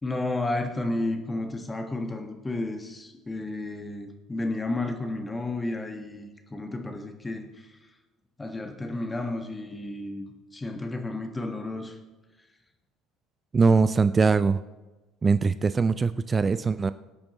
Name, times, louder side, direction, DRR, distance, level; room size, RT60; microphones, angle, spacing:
voice 1, 0.0-7.9 8.4-10.2 10.5-12.0, left 2 dB, 20° left, 4 dB, 1.4 m, -32 dB
voice 2, 13.5-14.6 15.2-16.9, right 4 dB, 25° right, 14 dB, 0.4 m, -22 dB
18.5 x 8.7 x 3.0 m, 1.2 s
figure-of-eight pair, 60°, 0 cm